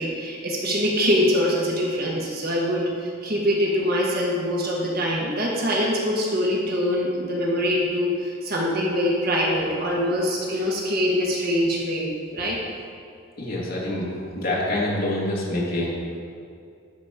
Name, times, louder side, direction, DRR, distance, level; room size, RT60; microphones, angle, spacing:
voice 1, 0.0-12.1 12.3-12.6, equal, 50° right, -3 dB, 1.4 m, -24 dB
voice 2, 13.4-16.2, left 1 dB, 50° left, -5 dB, 2.1 m, -26 dB
12.0 x 4.3 x 5.0 m, 2.3 s
head